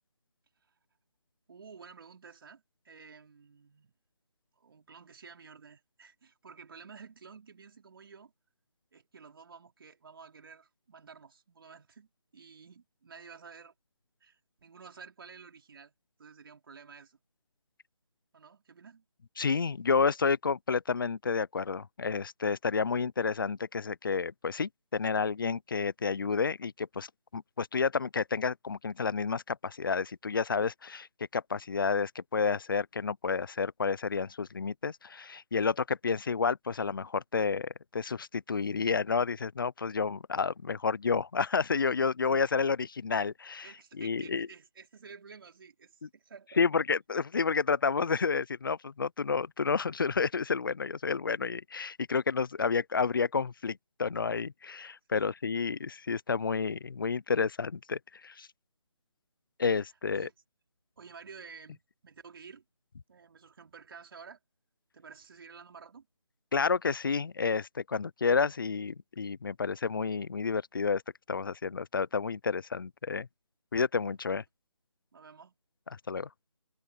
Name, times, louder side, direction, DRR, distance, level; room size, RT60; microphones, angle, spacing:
voice 1, 1.5-3.9 4.6-8.3 8.9-13.7 14.2-15.9 16.2-17.2 18.3-19.0 43.6-46.7 55.1-55.3 59.8-59.9 60.1-60.3 61.0-62.6 63.1-64.4 64.9-66.1 75.1-75.5, right 5 dB, 40° right, 4.7 m, -52 dB
voice 2, 19.4-27.1 27.3-31.1 31.3-44.5 46.0-46.1 46.6-58.5 59.6-60.3 66.5-71.0 71.3-73.3 73.7-74.4 76.1-76.3, left 5 dB, 40° left, 0.8 m, -30 dB
figure-of-eight pair, 160°, 18 cm